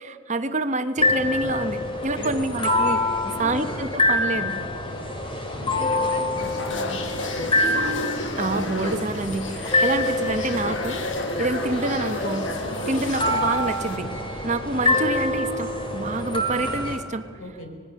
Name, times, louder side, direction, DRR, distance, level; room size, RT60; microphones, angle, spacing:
voice 1, 0.0-3.0 3.4-4.6 8.4-11.0 11.4-12.5 12.9-14.1 14.4-17.2, right 2 dB, 35° right, 10 dB, 1.0 m, -27 dB
sound 1, 1.0-17.0, left 1 dB, 25° left, 2.7 m, -26 dB
voice 2, 3.2-3.8 4.8-5.1 5.6-7.5 17.4-17.7, left 1 dB, 90° left, 4 dB, 4.5 m, -38 dB
sound 2, 6.4-14.0, left 2 dB, 60° left, 1.7 m, -32 dB
25.5 x 20.0 x 6.4 m, 2.4 s
head